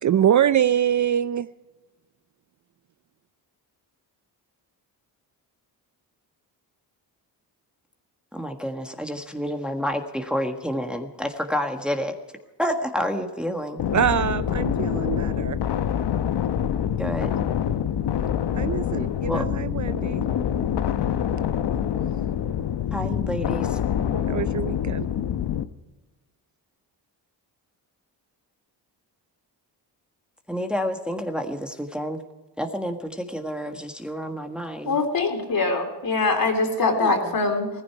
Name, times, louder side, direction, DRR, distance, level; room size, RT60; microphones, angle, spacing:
voice 1, 0.0-1.5 13.9-15.6 18.6-20.3 24.3-25.1, right 10 dB, 45° right, 15 dB, 0.5 m, -24 dB
voice 2, 8.3-12.2 12.6-13.8 17.0-17.4 19.3-19.4 22.9-23.8 30.5-32.2 32.6-35.0 37.0-37.3, equal, ahead, 4 dB, 1.5 m, -29 dB
sound 1, 13.8-25.7, left 9 dB, 65° left, 0.9 m, -26 dB
voice 3, 34.9-37.7, left 3 dB, 50° left, 3 dB, 3.8 m, -23 dB
17.0 x 15.0 x 4.7 m, 1.2 s
cardioid pair, 75°, 44 cm